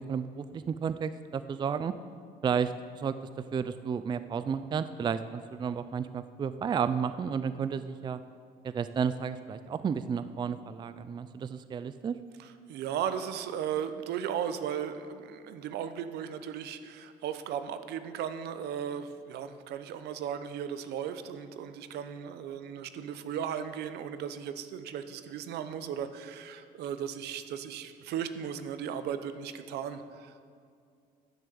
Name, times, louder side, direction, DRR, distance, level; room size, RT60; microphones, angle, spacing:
voice 1, 0.0-1.9 2.4-3.1 3.5-8.2 8.6-12.1, right 6 dB, 25° right, 12 dB, 0.4 m, -32 dB
voice 2, 12.4-30.4, right 8 dB, 75° right, 10 dB, 0.8 m, -36 dB
10.5 x 6.6 x 7.8 m, 2.3 s
cardioid pair, 110°, 17 cm